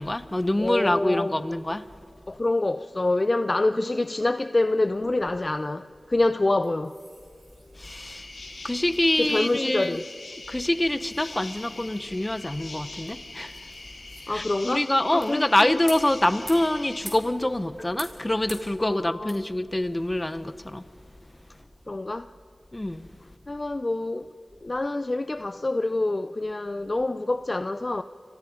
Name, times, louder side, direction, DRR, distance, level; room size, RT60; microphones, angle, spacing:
voice 1, 0.0-1.9 7.7-8.3 8.6-10.0 10.5-13.7 14.3-20.9 22.7-23.1, left 1 dB, 20° left, 1.0 m, -25 dB
voice 2, 0.6-1.4 2.3-7.0 9.2-10.0 14.3-14.8 15.1-15.8 18.8-19.4 21.9-22.3 23.5-24.3 24.6-28.0, left 2 dB, 35° left, 0.6 m, -26 dB
sound 1, 4.8-21.7, right 1 dB, 20° right, 4.9 m, -49 dB
sound 2, 7.8-17.0, left 2 dB, 80° left, 4.7 m, -42 dB
30.0 x 26.0 x 5.1 m
wide cardioid pair, 70°, 0 cm